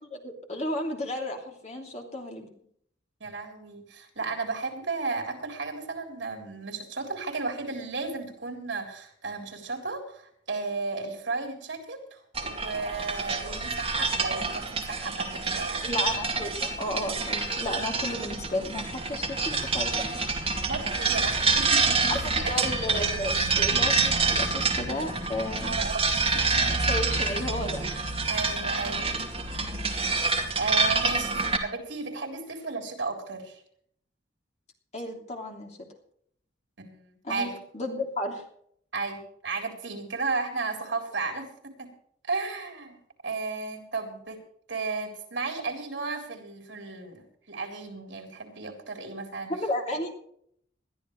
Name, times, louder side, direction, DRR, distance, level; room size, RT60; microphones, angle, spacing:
voice 1, 0.0-2.5 15.8-20.0 22.1-25.8 26.6-27.9 34.9-35.7 37.2-38.4 49.5-50.2, left 1 dB, 35° left, 1 dB, 3.0 m, -33 dB
voice 2, 3.2-15.9 20.7-22.7 25.6-26.8 28.3-29.2 30.3-33.6 36.8-37.6 38.9-41.9 42.3-44.4 44.7-49.5 49.9-50.0, right 3 dB, 75° right, 3 dB, 3.7 m, -34 dB
sound 1, 12.3-31.6, right 4 dB, 30° right, 2.3 m, -27 dB
21.0 x 13.0 x 3.2 m, 0.65 s
head